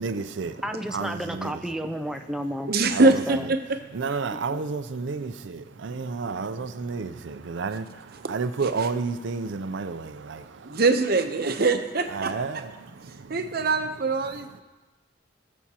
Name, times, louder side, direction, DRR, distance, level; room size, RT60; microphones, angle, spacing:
voice 1, 0.0-0.6 0.9-1.6 2.9-3.5 3.9-10.8 12.1-13.5, right 4 dB, 80° right, 0.5 m, -31 dB
voice 2, 0.6-2.7 3.0-3.5 4.5-4.6, equal, ahead, 0.4 m, -32 dB
voice 3, 2.7-3.8 10.6-12.7 13.3-14.6, right 3 dB, 55° right, 0.8 m, -23 dB
19.5 x 7.2 x 2.9 m
head